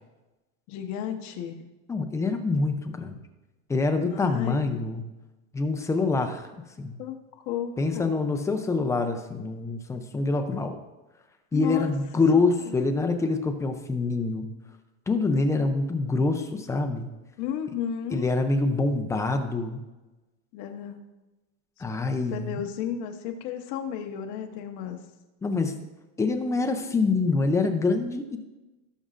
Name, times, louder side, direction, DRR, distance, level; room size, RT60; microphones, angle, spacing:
voice 1, 0.7-1.6 4.0-4.8 7.0-8.1 11.5-11.9 12.6-12.8 17.4-18.3 20.5-21.0 22.3-25.0, left 9 dB, 45° left, 5 dB, 1.2 m, -33 dB
voice 2, 1.9-3.2 3.7-5.0 5.5-6.5 6.8-7.0 7.8-10.8 11.5-14.5 15.1-17.1 18.1-19.8 21.8-22.6 25.4-25.8 26.2-28.4, left 3 dB, 10° left, 6 dB, 0.4 m, -25 dB
17.5 x 6.2 x 2.5 m, 1.1 s
supercardioid pair, 150°, 40 cm